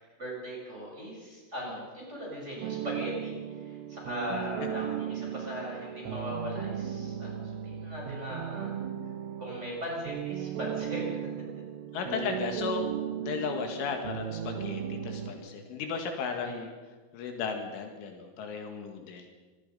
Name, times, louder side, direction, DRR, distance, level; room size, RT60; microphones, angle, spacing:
voice 1, 0.2-8.7 9.4-11.3 16.4-16.6, equal, 15° right, -3 dB, 6.9 m, -39 dB
sound 1, 2.6-15.3, right 9 dB, 80° right, 4.0 m, -36 dB
voice 2, 11.9-12.9 13.2-16.7 17.1-19.3, left 6 dB, 75° left, 4 dB, 4.2 m, -35 dB
26.0 x 19.5 x 5.5 m, 1.3 s
omnidirectional pair, 5.8 m